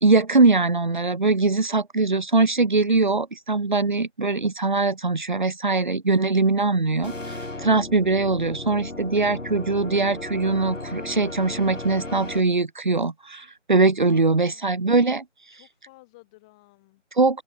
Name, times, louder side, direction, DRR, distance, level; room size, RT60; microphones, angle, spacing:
voice 1, 0.0-15.2 17.2-17.4, right 3 dB, 40° right, 1.0 m, -21 dB
sound 1, 7.0-12.4, left 2 dB, 85° left, 5.2 m, -35 dB
voice 2, 14.0-14.8 15.5-17.0, left 22 dB, 5° left, 2.1 m, -54 dB
open air
figure-of-eight pair, 170°, 37 cm